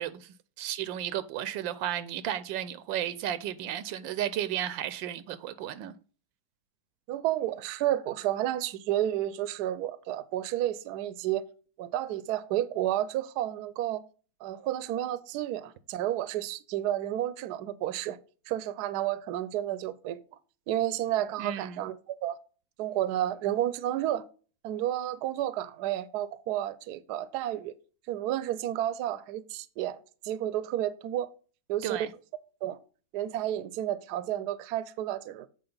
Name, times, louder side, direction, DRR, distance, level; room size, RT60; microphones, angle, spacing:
voice 1, 0.0-5.9 21.4-21.8 31.8-32.1, right 11 dB, 85° right, 1.3 m, -33 dB
voice 2, 7.1-11.4 11.8-14.0 14.4-18.2 18.5-20.2 20.7-22.3 22.8-24.2 24.6-27.7 28.1-30.0 30.2-31.3 31.7-32.0 32.6-32.8 33.1-35.5, right 12 dB, 70° right, 1.1 m, -31 dB
7.8 x 4.5 x 5.3 m
omnidirectional pair, 2.0 m